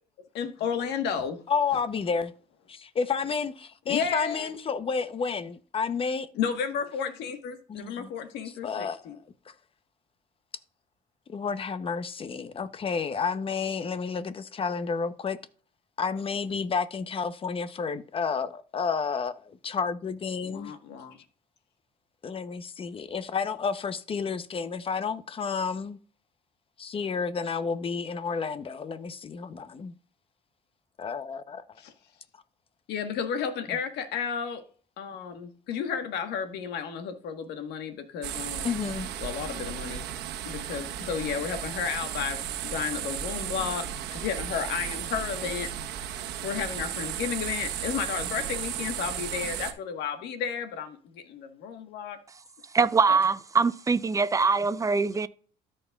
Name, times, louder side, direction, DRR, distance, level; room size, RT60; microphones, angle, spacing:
voice 1, 0.3-1.4 3.9-4.5 6.3-9.2 20.4-21.2 31.8-31.9 32.9-34.6 35.0-38.7 39.2-40.1 40.4-45.7 46.4-52.2 53.1-53.2, left 7 dB, 80° left, 1.4 m, -33 dB
voice 2, 1.5-2.3 2.7-6.3 7.7-8.1 8.4-9.2 11.3-15.4 16.0-20.7 22.2-26.0 26.8-29.9 31.0-31.6 38.6-39.1, left 5 dB, 35° left, 0.8 m, -31 dB
sound 1, 38.2-49.7, right 10 dB, 85° right, 1.1 m, -34 dB
voice 3, 52.7-55.3, right 4 dB, 20° right, 0.5 m, -23 dB
13.5 x 5.3 x 2.4 m
cardioid pair, 110°, 17 cm